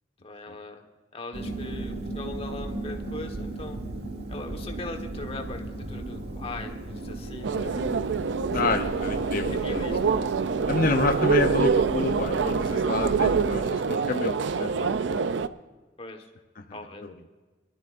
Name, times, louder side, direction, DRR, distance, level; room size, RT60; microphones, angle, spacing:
voice 1, 0.2-0.8 1.1-3.8 4.3-7.8 8.4-10.2 16.0-16.3 16.7-17.0, left 2 dB, 35° left, 3 dB, 1.3 m, -40 dB
sound 1, 1.3-13.5, right 2 dB, 65° right, 1.3 m, -35 dB
sound 2, 7.4-15.5, right 5 dB, 80° right, 0.4 m, -26 dB
voice 2, 8.5-10.0 10.7-15.3 17.0-17.1, left 3 dB, 50° left, 5 dB, 0.8 m, -29 dB
22.0 x 12.5 x 2.5 m, 1.3 s
head